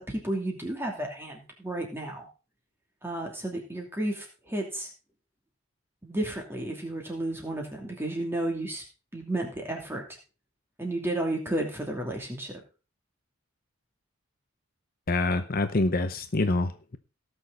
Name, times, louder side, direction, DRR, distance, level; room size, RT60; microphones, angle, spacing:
voice 1, 0.0-2.3 3.0-4.9 6.0-8.8 9.1-10.0 10.8-12.5, right 1 dB, 10° right, 0 dB, 2.8 m, -32 dB
voice 2, 15.1-17.0, left 2 dB, 45° left, 9 dB, 0.7 m, -26 dB
18.0 x 6.4 x 4.1 m, 0.33 s
head